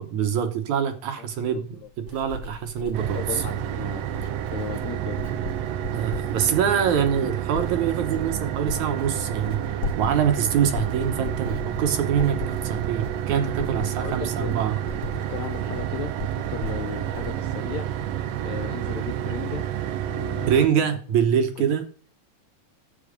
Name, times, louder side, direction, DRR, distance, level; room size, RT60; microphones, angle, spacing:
voice 1, 0.0-3.4 5.9-14.8 20.5-21.8, right 8 dB, 65° right, 7 dB, 2.3 m, -25 dB
Writing, 1.3-18.4 18.7-19.1, left 3 dB, 50° left, 2.7 m, -38 dB
voice 2, 1.5-1.9 3.2-4.0 4.5-5.2 14.0-14.6 15.1-17.9 18.4-19.7 20.0-21.0, left 9 dB, 75° left, 7 dB, 1.6 m, -36 dB
sound 1, 2.9-20.7, right 11 dB, 90° right, 1.4 m, -30 dB
10.0 x 7.7 x 5.1 m, 0.40 s
omnidirectional pair, 4.0 m